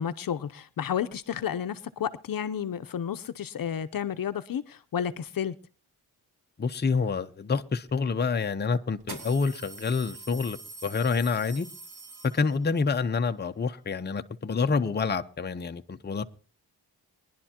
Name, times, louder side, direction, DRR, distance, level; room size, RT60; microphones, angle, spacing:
voice 1, 0.0-5.5, left 8 dB, 60° left, 0.8 m, -31 dB
voice 2, 6.6-11.7 12.3-16.2, left 4 dB, 25° left, 0.7 m, -27 dB
sound 1, 7.9-8.0 9.0-12.8, right 3 dB, 75° right, 4.2 m, -44 dB
22.0 x 11.0 x 2.9 m
wide cardioid pair, 105°, 39 cm